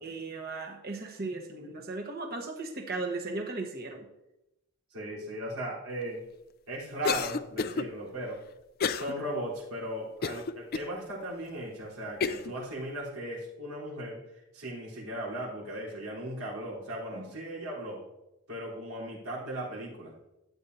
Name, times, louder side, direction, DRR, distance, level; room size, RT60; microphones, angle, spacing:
voice 1, 0.0-4.0 17.1-17.3, right 3 dB, 45° right, 2 dB, 1.2 m, -37 dB
voice 2, 4.9-6.2 6.7-8.4 8.9-14.2 14.5-18.0 18.5-20.1, right 1 dB, 85° right, -6 dB, 3.7 m, -37 dB
Cough, 7.0-7.9 8.8-9.1 9.6-9.7 10.2-10.9 11.5-11.6 12.2-12.5, left 5 dB, 45° left, 0.4 m, -30 dB
13.0 x 8.7 x 2.7 m, 0.91 s
head